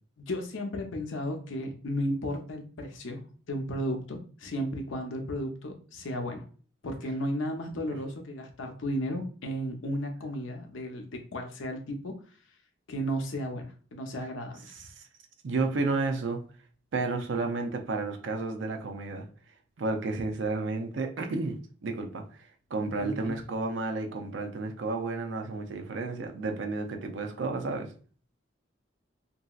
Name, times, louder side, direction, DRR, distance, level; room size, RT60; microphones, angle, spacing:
voice 1, 0.2-3.2 3.5-6.4 6.8-12.1 12.9-14.7 23.0-23.4, equal, 85° left, 0.6 m, -34 dB
voice 2, 14.7-15.0 15.4-16.5 16.9-19.3 19.8-22.3 22.7-27.9, right 3 dB, 75° right, 0.5 m, -32 dB
2.9 x 2.7 x 2.3 m
head